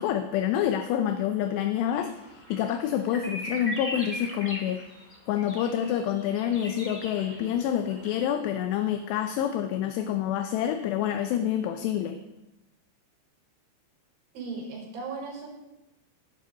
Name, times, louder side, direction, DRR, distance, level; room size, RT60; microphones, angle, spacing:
voice 1, 0.0-4.9 5.3-12.2, left 10 dB, 80° left, 7 dB, 2.7 m, -27 dB
sound 1, 1.9-8.2, equal, 40° left, 0.5 m, -40 dB
voice 2, 14.3-15.5, right 4 dB, 80° right, -2 dB, 6.8 m, -36 dB
18.5 x 12.0 x 4.0 m, 0.97 s
omnidirectional pair, 5.3 m